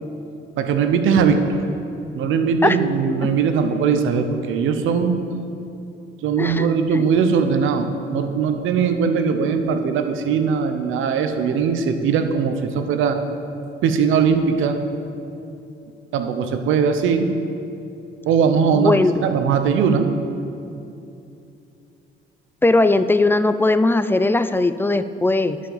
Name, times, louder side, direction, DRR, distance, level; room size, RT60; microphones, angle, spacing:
voice 1, 0.6-1.6 2.1-5.2 6.2-13.2 13.8-14.8 16.1-17.3 18.2-20.1, right 6 dB, 85° right, 7 dB, 0.9 m, -20 dB
voice 2, 6.4-7.1 18.7-19.3 22.6-25.6, left 2 dB, 10° left, 12 dB, 0.4 m, -19 dB
11.5 x 5.2 x 7.2 m, 2.7 s
cardioid pair, 90°, 20 cm